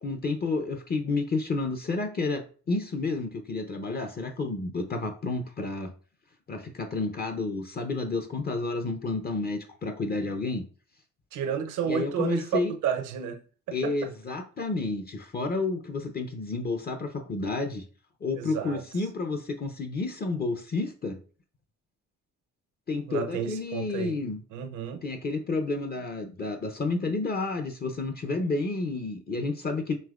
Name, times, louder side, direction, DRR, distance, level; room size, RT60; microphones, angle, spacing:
voice 1, 0.0-5.9 6.5-10.6 11.8-12.7 13.7-17.8 18.2-21.2 22.9-24.4 25.0-30.0, left 3 dB, 30° left, 0.6 m, -30 dB
voice 2, 11.3-12.5 12.8-13.4 13.7-14.1 18.3-18.8 23.1-24.2 24.5-25.0, right 8 dB, 80° right, 0.7 m, -31 dB
5.4 x 3.0 x 2.4 m
cardioid pair, 90°, 30 cm